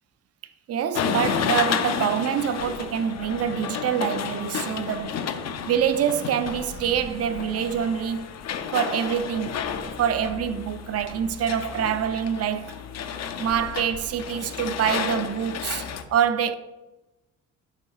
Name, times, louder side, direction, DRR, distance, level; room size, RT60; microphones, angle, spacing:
voice 1, 0.7-5.3 5.7-8.3 8.7-12.8 13.4-16.6, right 8 dB, 55° right, 0.5 m, -26 dB
sound 1, 0.9-16.0, left 7 dB, 60° left, 0.6 m, -31 dB
5.8 x 4.5 x 4.7 m
cardioid pair, 90°, 30 cm